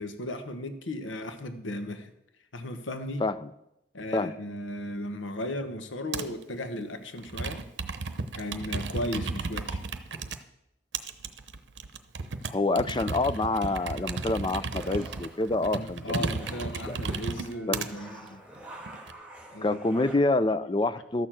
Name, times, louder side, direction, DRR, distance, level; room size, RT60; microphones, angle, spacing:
voice 1, 0.0-2.1 2.5-3.2 3.9-7.6 8.3-9.8 15.6-18.4 19.5-19.8, left 1 dB, 80° left, 8 dB, 1.1 m, -36 dB
voice 2, 3.2-3.5 4.1-4.3 12.4-16.3 16.9-17.0 17.7-17.8 19.6-21.3, left 2 dB, 25° left, 13 dB, 0.5 m, -27 dB
Computer keyboard, 6.1-6.4 7.2-10.4 10.9-17.9 18.6-19.1, right 4 dB, 65° right, 0.8 m, -34 dB
sound 1, 12.9-20.1, right 1 dB, 5° right, 2.7 m, -48 dB
13.0 x 6.7 x 7.5 m, 0.86 s
head